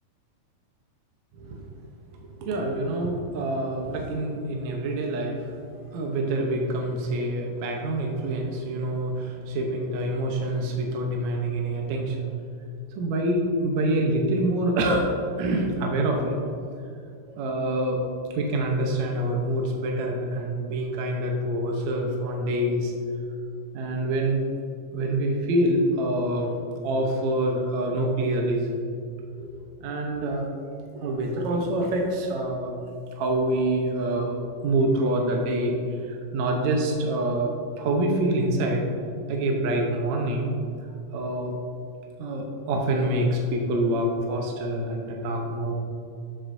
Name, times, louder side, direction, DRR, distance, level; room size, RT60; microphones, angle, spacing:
voice 1, 2.1-5.5 5.9-12.2 13.0-15.1 15.4-16.4 17.3-18.0 18.3-22.9 23.7-24.4 24.9-26.5 26.8-28.8 29.4-29.5 29.8-30.5 30.9-32.8 33.2-35.8 36.0-38.8 39.3-40.5 41.1-41.5 42.2-45.7, right 1 dB, 70° right, 0 dB, 1.9 m, -26 dB
12.5 x 7.8 x 2.7 m, 2.5 s
omnidirectional pair, 3.9 m